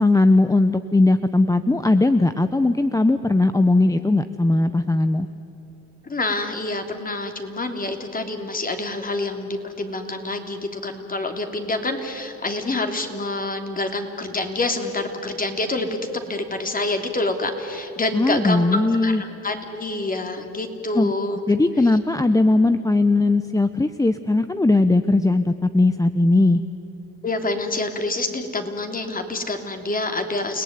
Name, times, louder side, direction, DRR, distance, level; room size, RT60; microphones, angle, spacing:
voice 1, 0.0-5.3 18.1-19.2 20.9-21.1 21.5-26.6, left 2 dB, 10° left, 10 dB, 0.8 m, -18 dB
voice 2, 6.0-15.9 16.3-21.4 21.8-21.9 27.2-30.6, left 2 dB, 30° left, 5 dB, 3.1 m, -27 dB
29.5 x 18.0 x 9.6 m, 3.0 s
cardioid pair, 90°, 30 cm